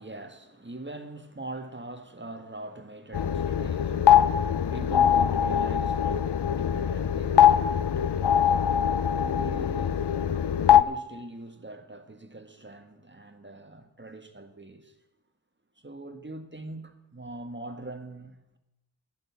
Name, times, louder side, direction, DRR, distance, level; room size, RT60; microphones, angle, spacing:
voice 1, 0.0-15.0 15.8-18.6, right 2 dB, 25° right, 1.6 m, -43 dB
sound 1, 3.1-10.8, left 9 dB, 75° left, 0.6 m, -22 dB
11.5 x 10.5 x 7.1 m
wide cardioid pair, 55°, 41 cm